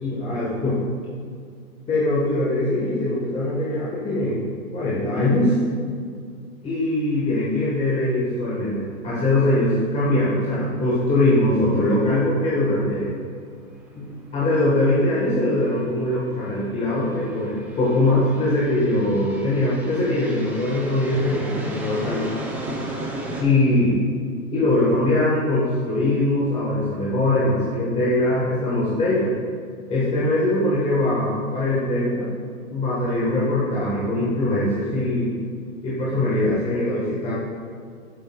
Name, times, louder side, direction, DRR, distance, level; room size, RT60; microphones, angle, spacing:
voice 1, 0.0-0.8 1.9-4.4 4.7-5.6 6.6-13.1 13.9-22.3 23.4-23.9 24.5-29.3 29.9-32.3 32.7-35.3 35.8-37.3, left 1 dB, 15° left, -8 dB, 1.4 m, -22 dB
sound 1, 7.3-7.4 7.7-7.8 11.9-12.0 13.0-13.2 13.9-23.4, right 1 dB, 5° right, 0.4 m, -36 dB
11.0 x 8.0 x 2.3 m, 2.2 s
hypercardioid pair, 130°, 44 cm